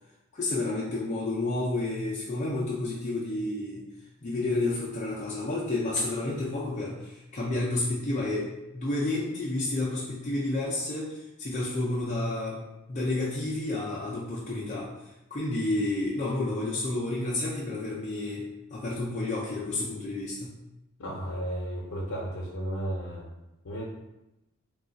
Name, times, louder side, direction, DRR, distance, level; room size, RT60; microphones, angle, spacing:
voice 1, 0.3-3.9 4.2-20.6, left 2 dB, 35° left, -6 dB, 0.4 m, -30 dB
voice 2, 21.0-23.2 23.6-23.8, right 1 dB, 85° left, -4 dB, 0.6 m, -33 dB
2.4 x 2.3 x 3.9 m, 0.94 s
head